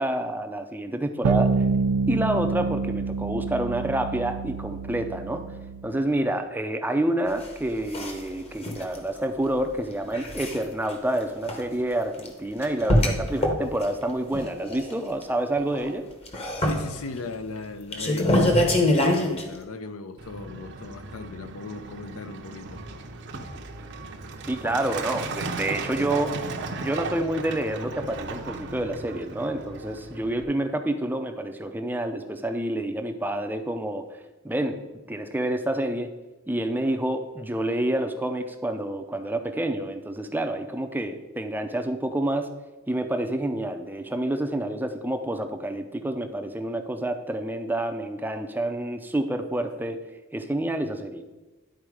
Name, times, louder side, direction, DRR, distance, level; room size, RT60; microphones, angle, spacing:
voice 1, 0.0-1.5 2.1-5.4 5.8-16.1 24.5-26.4 26.7-34.0 34.4-34.8 35.1-36.1 36.5-42.5 42.9-50.0 50.3-51.2, right 1 dB, 10° right, 6 dB, 0.5 m, -28 dB
sound 1, 1.2-6.0, right 4 dB, 85° right, 0.4 m, -27 dB
sound 2, 7.3-7.5 7.9-8.3 8.6-9.0 10.1-10.6 10.9-11.0 11.4-11.6 12.2-12.3 12.6-13.9 14.2-15.2 15.6-15.9 16.3-17.3 17.7-19.4, left 1 dB, 30° left, 0.9 m, -24 dB
voice 2, 16.6-18.6 18.9-22.8, left 3 dB, 70° left, 11 dB, 0.6 m, -38 dB
Truck, 20.2-30.4, right 3 dB, 55° right, 0.7 m, -36 dB
10.5 x 4.3 x 4.8 m, 1.2 s
head